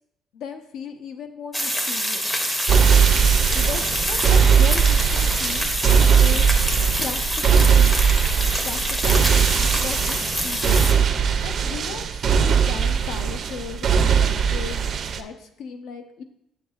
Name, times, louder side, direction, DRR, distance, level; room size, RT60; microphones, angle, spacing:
voice 1, 0.3-2.3 3.5-5.7 6.2-6.5 7.0-7.9 8.6-10.8 11.4-14.8 15.2-16.2, left 6 dB, 70° left, 7 dB, 0.7 m, -36 dB
sound 1, 1.5-10.9, equal, 10° left, 0.6 m, -26 dB
sound 2, 2.7-15.2, right 7 dB, 40° right, 0.4 m, -19 dB
8.1 x 6.6 x 2.4 m, 0.77 s
cardioid pair, 170°, 0 cm